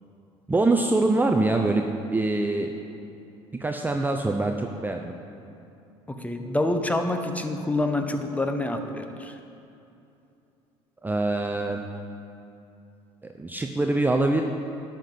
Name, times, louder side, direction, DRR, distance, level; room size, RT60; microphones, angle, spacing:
voice 1, 0.5-1.8 2.1-2.7 3.6-5.1 11.0-11.8 13.4-14.4, right 2 dB, 15° right, 3 dB, 0.7 m, -24 dB
voice 2, 6.1-9.4, left 2 dB, 10° left, 6 dB, 1.1 m, -27 dB
11.5 x 5.9 x 7.6 m, 2.8 s
hypercardioid pair, 75°, 14 cm